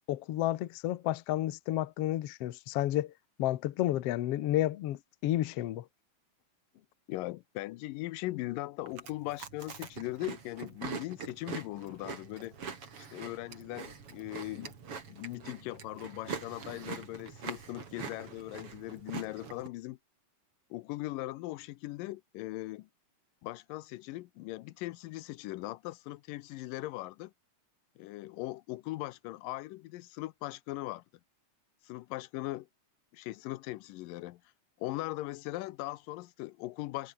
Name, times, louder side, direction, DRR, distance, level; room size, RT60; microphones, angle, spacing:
voice 1, 0.1-3.1 3.4-5.8, left 14 dB, 70° left, 1.5 m, -31 dB
voice 2, 7.1-12.6 13.0-14.8 15.1-20.0 20.7-22.9 23.4-27.3 28.0-31.0 31.8-32.7 33.1-34.4 34.8-37.1, left 18 dB, 90° left, 2.3 m, -39 dB
Chewing mastication, 8.9-19.7, right 6 dB, 40° right, 3.6 m, -44 dB
omnidirectional pair, 4.0 m